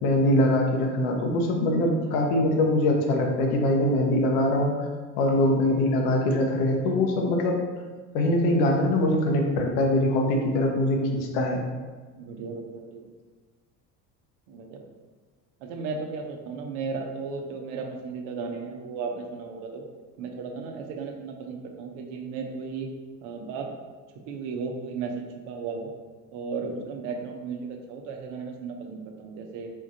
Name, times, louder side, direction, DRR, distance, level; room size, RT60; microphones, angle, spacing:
voice 1, 0.0-4.7 5.2-7.6 8.1-11.7, left 1 dB, 65° left, 2 dB, 1.0 m, -23 dB
voice 2, 12.2-13.1 14.5-14.8 15.6-19.8 20.2-22.9 23.2-23.7 24.3-25.9 26.3-29.7, right 4 dB, 55° right, 3 dB, 0.8 m, -35 dB
4.6 x 3.5 x 2.7 m, 1.4 s
hypercardioid pair, 70°, 49 cm